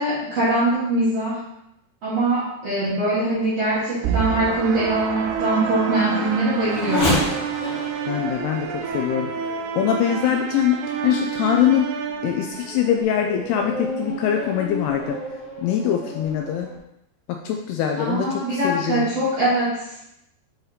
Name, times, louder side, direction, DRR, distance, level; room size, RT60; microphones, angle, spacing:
voice 1, 0.0-1.4 2.0-7.3 18.0-19.9, right 2 dB, 55° right, -9 dB, 1.9 m, -22 dB
Race car auto racing / Accelerating revving vroom, 2.9-10.7 11.3-11.4 12.0-16.8, left 2 dB, 65° left, 1.5 m, -32 dB
sound 1, 4.0-13.0, right 7 dB, 80° right, 2.6 m, -29 dB
voice 2, 8.1-9.3 9.8-10.8 11.0-11.9 12.2-15.2 15.6-16.7 17.3-19.1, left 9 dB, 80° left, 2 dB, 2.4 m, -23 dB
7.8 x 4.2 x 4.0 m, 0.82 s
omnidirectional pair, 5.0 m